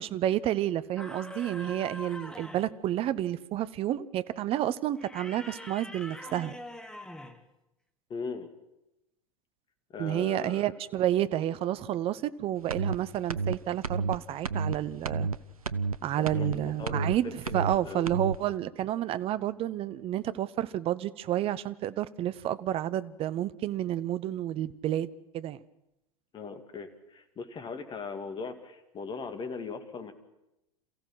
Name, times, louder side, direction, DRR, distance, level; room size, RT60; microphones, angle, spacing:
voice 1, 0.0-6.5 10.0-15.3 16.0-25.6, right 12 dB, 30° right, 15 dB, 0.8 m, -30 dB
sound 1, 0.9-2.8 5.0-7.4, left 1 dB, 5° left, 1.6 m, -44 dB
voice 2, 8.1-8.5 9.9-10.7 16.2-18.0 26.3-30.1, left 4 dB, 25° left, 7 dB, 2.3 m, -39 dB
sound 2, 12.7-13.0 13.3-13.6 13.8-14.2 14.4-14.8 15.0-15.4 15.7-16.0 16.3-16.6 16.9-17.2 17.5-17.8 18.1-18.4, right 4 dB, 80° right, 0.7 m, -30 dB
28.0 x 15.5 x 6.2 m, 0.90 s
figure-of-eight pair, 85°, 18 cm